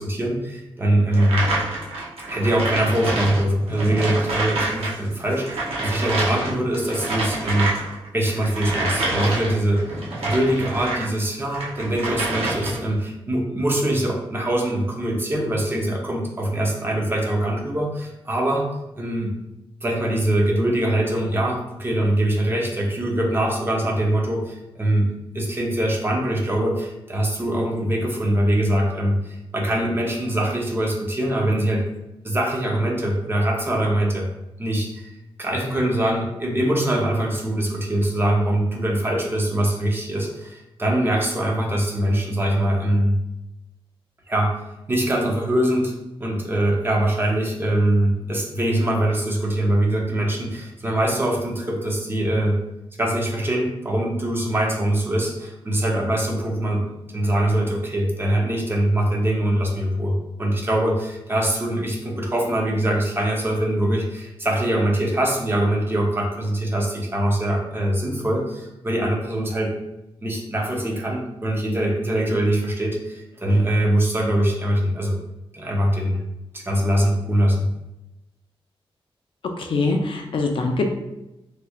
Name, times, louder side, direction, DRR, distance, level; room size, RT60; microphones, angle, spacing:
voice 1, 0.0-1.4 2.3-7.7 8.1-9.8 10.2-18.7 19.0-19.3 19.8-25.1 25.3-31.8 32.2-34.3 34.6-35.1 35.4-43.2 44.3-44.5 44.9-45.9 46.2-52.6 53.0-56.9 57.1-69.7 70.2-75.2 75.5-76.2 76.5-77.6, right 1 dB, 25° right, -1 dB, 0.6 m, -23 dB
sound 1, 1.1-5.0 5.2-11.1 11.5-13.0, right 2 dB, 80° right, 0.7 m, -27 dB
voice 2, 79.7-80.9, left 3 dB, 65° left, 3 dB, 0.4 m, -22 dB
3.2 x 3.1 x 2.3 m, 0.94 s
wide cardioid pair, 150°, 10 cm